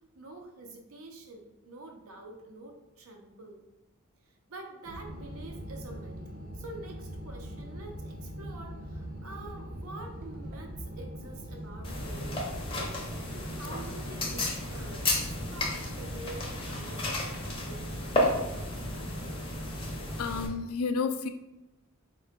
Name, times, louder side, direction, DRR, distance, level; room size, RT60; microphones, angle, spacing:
voice 1, 0.1-3.7 4.3-6.2 6.5-12.6 13.3-18.0 18.3-18.8, right 2 dB, 85° right, 2 dB, 0.7 m, -47 dB
sound 1, 4.8-12.7, equal, 40° right, 0.6 m, -41 dB
sound 2, 11.8-20.5, left 1 dB, 25° left, 0.6 m, -33 dB
voice 2, 20.2-21.3, left 5 dB, 80° left, 9 dB, 0.4 m, -30 dB
4.6 x 2.3 x 3.4 m, 0.95 s
head